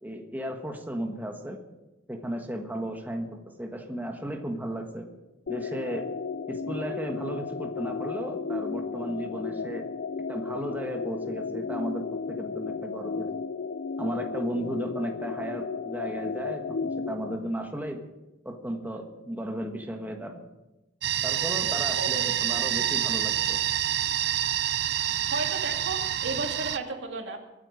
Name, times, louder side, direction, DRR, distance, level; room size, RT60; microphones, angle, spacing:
voice 1, 0.0-1.6 2.1-5.1 5.5-6.1 6.5-9.9 10.3-13.3 14.0-18.0 18.4-20.5 21.2-23.6, equal, 10° right, 3 dB, 1.4 m, -35 dB
sound 1, 5.5-17.4, left 5 dB, 60° left, 0.5 m, -34 dB
sound 2, 21.0-26.8, right 11 dB, 65° right, 0.7 m, -27 dB
voice 2, 25.3-27.4, right 3 dB, 90° right, 3 dB, 2.4 m, -34 dB
23.0 x 9.2 x 5.2 m, 1.0 s
head